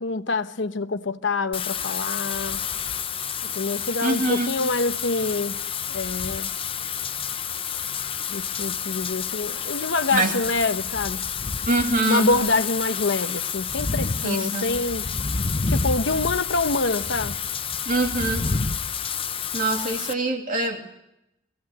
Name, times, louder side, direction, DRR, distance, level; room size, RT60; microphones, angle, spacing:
voice 1, 0.0-2.6 3.4-5.6 5.9-6.5 8.3-11.2 12.1-15.1 15.7-17.4, left 3 dB, 85° left, 1.0 m, -26 dB
Wind / Rain, 1.5-20.1, left 6 dB, 30° left, 0.7 m, -29 dB
voice 2, 4.0-4.5 10.1-10.3 11.7-12.3 14.2-14.7 17.9-18.4 19.5-20.8, right 2 dB, 45° right, 2.6 m, -24 dB
22.5 x 16.5 x 7.9 m
head